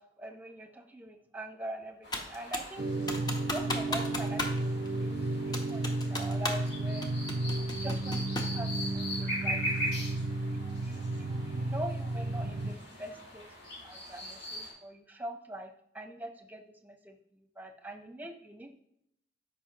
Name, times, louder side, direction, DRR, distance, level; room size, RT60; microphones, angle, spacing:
voice 1, 0.0-2.9 3.4-7.1 7.8-8.3 8.5-9.6 10.5-13.4 13.8-15.7 15.9-18.7, right 1 dB, 10° right, 4 dB, 0.9 m, -43 dB
sound 1, 2.0-14.7, equal, 65° left, 3.5 m, -41 dB
Computer keyboard, 2.1-2.7 3.1-4.6 4.8-4.9 5.5-6.7 7.0-8.6, left 2 dB, 25° left, 0.9 m, -35 dB
sound 2, 2.8-12.7, right 2 dB, 50° right, 0.5 m, -33 dB
13.0 x 5.4 x 3.0 m, 0.74 s
head